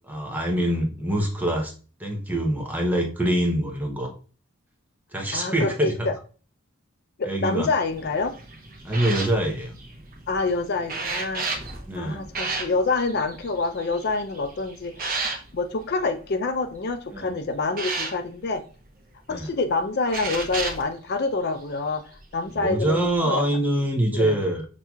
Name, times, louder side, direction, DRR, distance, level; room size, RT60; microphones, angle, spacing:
voice 1, 0.1-1.7 2.0-4.1 5.1-6.1 7.3-7.7 8.8-9.7 11.9-12.2 17.1-17.3 19.3-19.5 22.5-24.6, right 1 dB, 10° right, 0.7 m, -25 dB
voice 2, 5.3-6.2 7.2-8.4 10.3-11.5 11.9-15.1 15.5-18.6 19.3-23.5 24.1-24.4, left 3 dB, 50° left, 0.4 m, -27 dB
sound 1, 7.9-16.3 16.8-17.1 17.7-18.1 19.4-19.5 20.1-20.8 21.8-22.0 22.9-23.2, right 3 dB, 45° right, 0.8 m, -33 dB
5.9 x 2.7 x 2.3 m
head